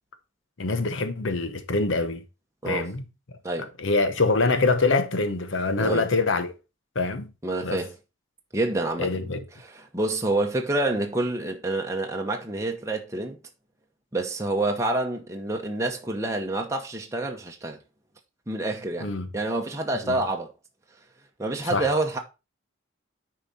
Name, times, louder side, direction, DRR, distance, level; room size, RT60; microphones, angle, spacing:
voice 1, 0.6-2.2 2.6-3.0 3.8-6.5 6.9-7.3 7.6-7.8 9.0-9.4 19.0-19.3 20.0-20.2 21.7-21.9, left 3 dB, 75° left, 0.9 m, -24 dB
voice 2, 7.4-8.0 8.5-9.1 9.6-13.4 14.1-17.8 18.5-20.5 21.4-22.2, right 2 dB, 15° right, 0.8 m, -28 dB
8.9 x 4.8 x 4.2 m
head